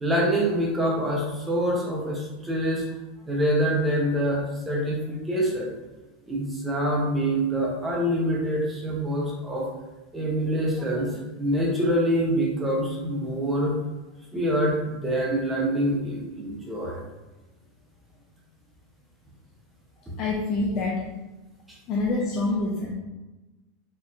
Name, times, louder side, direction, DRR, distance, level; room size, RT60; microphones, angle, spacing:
voice 1, 0.0-2.9 3.3-5.7 6.3-9.7 10.1-13.8 14.3-17.0 21.7-21.8, equal, 10° right, -2 dB, 0.7 m, -25 dB
voice 2, 20.2-21.1 21.9-22.9, left 2 dB, 40° left, -2 dB, 0.5 m, -26 dB
4.4 x 2.6 x 2.5 m, 1.1 s
supercardioid pair, 155°, 0 cm